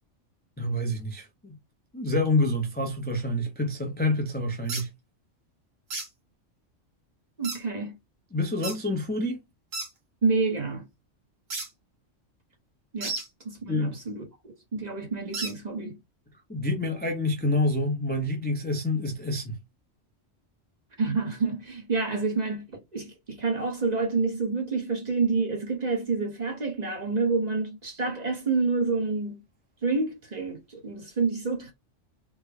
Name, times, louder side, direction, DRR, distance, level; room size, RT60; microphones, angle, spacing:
voice 1, 0.6-1.5 1.9-4.9 8.3-9.4 13.7-14.0 16.5-19.6, left 1 dB, 10° left, 0.5 m, -27 dB
sound 1, 4.7-4.8 5.9-6.1 7.4-7.6 8.6-8.8 9.7-9.9 11.5-11.7 13.0-13.3 15.3-15.5, right 3 dB, 90° right, 1.8 m, -32 dB
voice 2, 7.4-8.0 10.2-10.8 12.9-13.2 13.4-14.3 14.7-16.0 21.0-29.4 29.8-31.7, right 4 dB, 35° right, 1.0 m, -28 dB
3.6 x 2.2 x 3.4 m
omnidirectional pair, 1.3 m